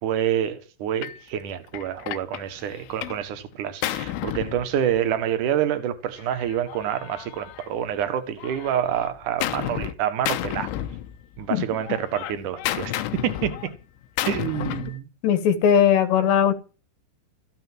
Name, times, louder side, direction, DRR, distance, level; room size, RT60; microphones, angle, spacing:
voice 1, 0.0-10.7 11.4-13.7 14.3-15.1, right 10 dB, 60° right, 2.4 m, -27 dB
Gunshot gunfire, 1.0-1.2 1.7-3.3 3.5-5.2 6.2-8.0 8.4-10.0 10.3-11.5 11.8-15.0, left 13 dB, 90° left, 3.5 m, -32 dB
voice 2, 15.2-16.5, left 9 dB, 70° left, 3.7 m, -19 dB
15.0 x 9.2 x 7.7 m
omnidirectional pair, 5.4 m